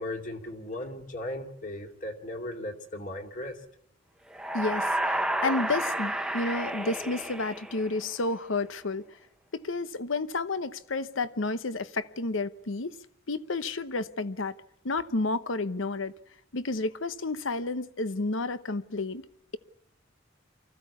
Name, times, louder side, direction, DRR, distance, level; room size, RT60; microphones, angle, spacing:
voice 1, 0.0-3.6, left 1 dB, 40° left, 2.5 m, -37 dB
sound 1, 4.3-8.2, right 1 dB, 5° right, 0.8 m, -31 dB
voice 2, 4.5-9.1 9.5-13.0 13.3-14.6 14.8-16.1 16.5-19.2, left 3 dB, 85° left, 1.0 m, -31 dB
24.5 x 15.0 x 8.3 m
head